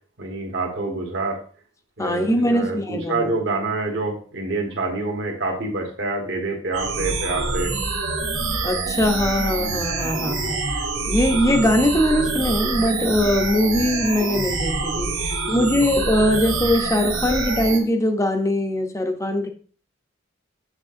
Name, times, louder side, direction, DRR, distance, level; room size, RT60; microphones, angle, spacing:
voice 1, 0.2-1.4 2.0-7.7, right 3 dB, 60° right, 1.4 m, -27 dB
voice 2, 2.0-3.3 8.6-19.5, left 1 dB, 15° left, 0.6 m, -21 dB
sound 1, 6.7-17.8, right 3 dB, 90° right, 1.7 m, -26 dB
6.5 x 6.2 x 2.5 m
head